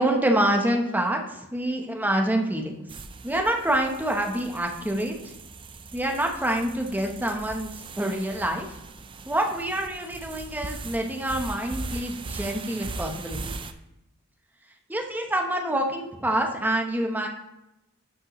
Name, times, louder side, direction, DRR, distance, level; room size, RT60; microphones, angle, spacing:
voice 1, 0.0-2.7 3.2-5.3 5.9-8.7 9.3-13.5 14.9-17.3, right 1 dB, 10° right, 2 dB, 0.8 m, -26 dB
sound 1, 2.9-13.7, right 3 dB, 25° right, 0.4 m, -39 dB
12.5 x 5.3 x 3.0 m, 0.92 s
head